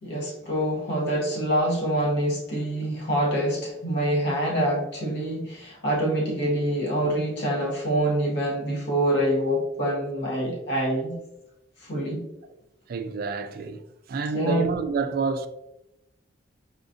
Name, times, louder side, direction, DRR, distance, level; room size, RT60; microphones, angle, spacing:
voice 1, 0.0-11.2 11.8-12.2 14.3-14.7, right 1 dB, 60° left, 1.1 m, -26 dB
voice 2, 12.9-13.8 14.1-15.5, right 4 dB, 50° right, 0.3 m, -28 dB
4.9 x 2.5 x 2.5 m
head